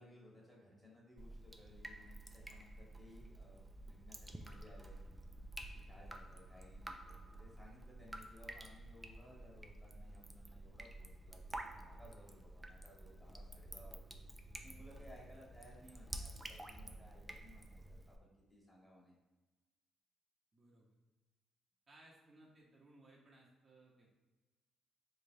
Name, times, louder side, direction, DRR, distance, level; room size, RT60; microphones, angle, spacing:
voice 1, 0.0-5.0 5.9-14.2 14.6-19.2, left 1 dB, 10° left, -4 dB, 1.4 m, -61 dB
Drip, 1.2-18.2, right 1 dB, 10° right, 0.4 m, -51 dB
voice 2, 20.5-20.9 21.9-24.1, right 2 dB, 40° right, -4 dB, 0.8 m, -63 dB
3.4 x 3.2 x 2.7 m, 1.2 s
cardioid pair, 90°, 0 cm